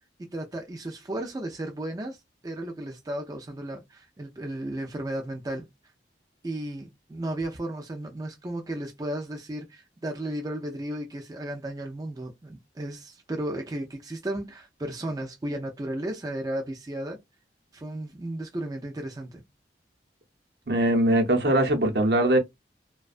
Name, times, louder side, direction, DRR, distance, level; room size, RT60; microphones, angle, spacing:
voice 1, 0.3-5.6 6.4-17.2 17.7-19.4, right 1 dB, 20° right, 0.4 m, -34 dB
voice 2, 20.7-22.4, right 1 dB, 65° right, 0.8 m, -21 dB
2.5 x 2.2 x 2.4 m
head